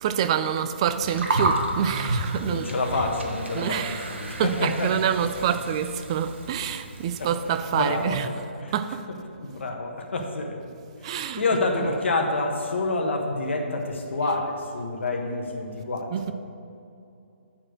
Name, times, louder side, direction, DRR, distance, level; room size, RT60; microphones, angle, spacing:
voice 1, 0.0-2.7 3.5-8.3 8.7-9.0 11.0-11.4 16.1-16.3, right 9 dB, 30° right, 0.3 m, -27 dB
Gurgling, 0.9-8.1, right 2 dB, 80° right, 1.2 m, -31 dB
voice 2, 2.4-3.8 4.1-4.9 7.2-7.3 7.7-8.3 8.6-8.7 9.4-10.5 11.0-16.3, left 2 dB, 80° left, 1.4 m, -28 dB
8.5 x 4.4 x 6.4 m
hypercardioid pair, 160°, 6 cm